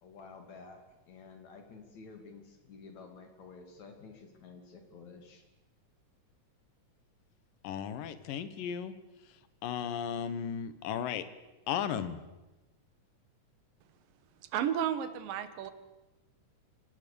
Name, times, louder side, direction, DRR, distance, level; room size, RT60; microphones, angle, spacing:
voice 1, 0.0-0.8 1.1-5.4, left 4 dB, 60° left, 5 dB, 3.9 m, -51 dB
voice 2, 7.6-8.9 9.6-11.3 11.7-12.2, left 8 dB, 80° left, 13 dB, 2.8 m, -35 dB
voice 3, 14.5-15.7, right 9 dB, 85° right, 12 dB, 3.0 m, -32 dB
26.5 x 18.0 x 6.9 m, 1.1 s
omnidirectional pair, 3.9 m